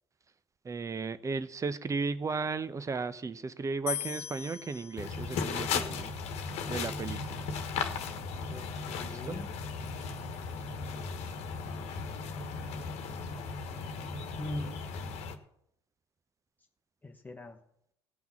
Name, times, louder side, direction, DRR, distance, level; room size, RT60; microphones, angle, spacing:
voice 1, 0.6-6.1 6.7-7.5 9.0-9.4, right 4 dB, 25° right, 0.8 m, -35 dB
sound 1, 3.9-7.1, left 10 dB, 75° left, 1.0 m, -42 dB
sound 2, 5.0-15.4, left 5 dB, 50° left, 1.4 m, -36 dB
voice 2, 8.5-9.5 12.7-12.9 14.4-14.8 17.0-17.6, left 2 dB, 10° left, 1.2 m, -42 dB
16.5 x 5.8 x 7.3 m
figure-of-eight pair, 60°, 13 cm